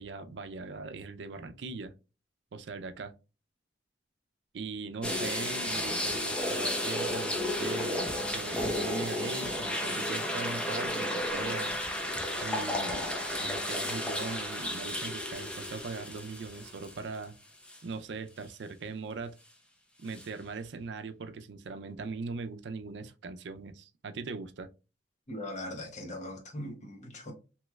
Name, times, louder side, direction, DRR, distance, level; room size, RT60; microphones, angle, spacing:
voice 1, 0.0-1.9 2.5-3.1 4.5-11.7 12.4-13.1 13.4-17.3 17.8-19.3 20.0-24.7, right 4 dB, 80° right, 0.4 m, -40 dB
sound 1, 5.0-17.2 17.7-17.8 20.1-20.3, left 1 dB, 5° left, 0.6 m, -33 dB
voice 2, 25.3-27.3, left 1 dB, 45° left, 1.1 m, -40 dB
3.1 x 3.0 x 2.3 m
head